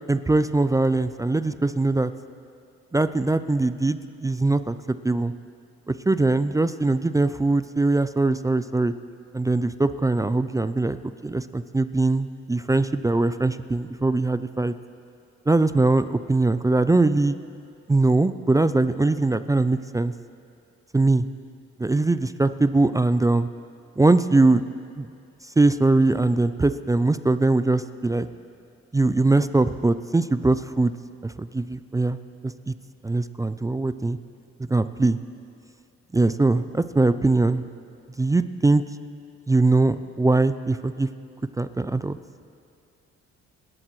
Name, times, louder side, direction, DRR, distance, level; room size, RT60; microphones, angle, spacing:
voice 1, 0.1-2.1 2.9-5.3 5.9-8.9 9.3-11.0 11.2-14.7 15.5-17.4 17.9-20.1 20.9-21.2 21.8-23.5 24.0-24.6 25.0-25.1 25.6-28.3 28.9-30.9 31.2-32.2 32.4-32.7 33.0-34.2 34.6-35.2 36.1-37.6 38.2-38.8 39.5-41.1 41.6-42.2, right 2 dB, 10° right, 12 dB, 0.3 m, -21 dB
26.0 x 11.5 x 3.1 m, 2.4 s
cardioid pair, 90°, 30 cm